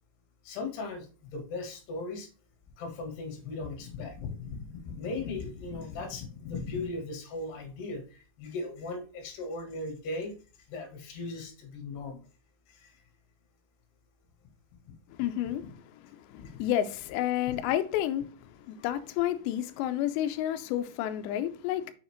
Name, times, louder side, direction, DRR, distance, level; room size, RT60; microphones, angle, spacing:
voice 1, 0.4-1.1 1.3-2.3 2.8-8.0 8.4-10.3 10.7-12.2 12.7-12.9 16.4-16.6 17.5-17.6, left 3 dB, 65° left, 3.6 m, -37 dB
voice 2, 15.2-15.6 16.3-18.3 18.7-21.9, left 12 dB, 90° left, 2.5 m, -30 dB
7.2 x 6.4 x 3.0 m
omnidirectional pair, 5.7 m